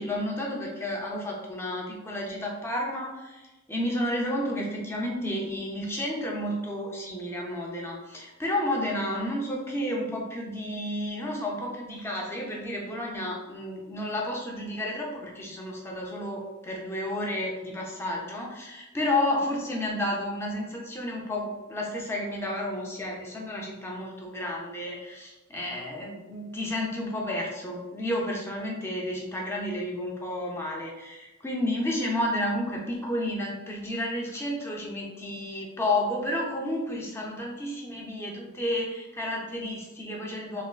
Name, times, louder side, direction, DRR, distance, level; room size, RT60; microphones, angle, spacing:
voice 1, 0.0-40.6, left 1 dB, 10° left, -2 dB, 0.4 m, -31 dB
3.3 x 2.3 x 2.3 m, 1.1 s
head